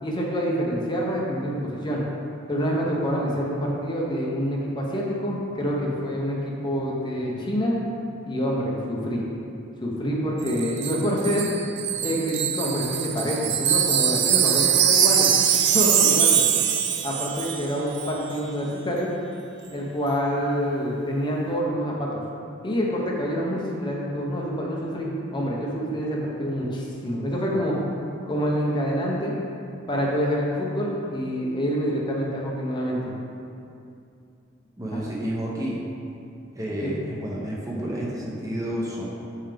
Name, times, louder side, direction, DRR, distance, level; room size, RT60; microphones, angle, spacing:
voice 1, 0.0-2.0 2.5-7.7 8.3-9.2 9.8-11.5 12.0-15.3 15.7-16.4 17.0-19.1 19.7-22.2 22.6-27.8 28.3-29.4 29.9-33.1 34.9-35.0 36.8-37.1, equal, 25° left, -3 dB, 0.9 m, -27 dB
voice 2, 10.2-10.7 11.0-11.1 12.0-12.1 34.8-35.8 36.5-39.0, right 1 dB, 15° right, -5 dB, 0.8 m, -31 dB
Wind chime, 10.5-17.7 17.9-18.1, right 9 dB, 60° right, 0.4 m, -22 dB
7.1 x 5.6 x 3.5 m, 2.6 s
head